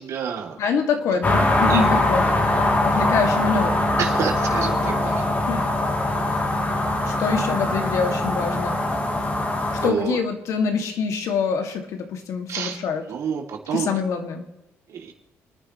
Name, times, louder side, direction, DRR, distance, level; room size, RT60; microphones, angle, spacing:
voice 1, 0.0-0.6 1.6-1.9 4.0-5.2 9.8-10.2 12.5-12.8 13.1-13.9 14.9-15.1, right 7 dB, 70° right, 2 dB, 2.9 m, -28 dB
voice 2, 0.6-2.2 2.8-3.8 5.5-5.7 7.1-8.8 9.7-13.0 13.7-14.5, left 5 dB, 75° left, 4 dB, 2.4 m, -25 dB
sound 1, 1.2-9.9, left 1 dB, 30° left, 3.0 m, -22 dB
29.5 x 10.0 x 3.2 m, 0.96 s
cardioid pair, 105°, 5 cm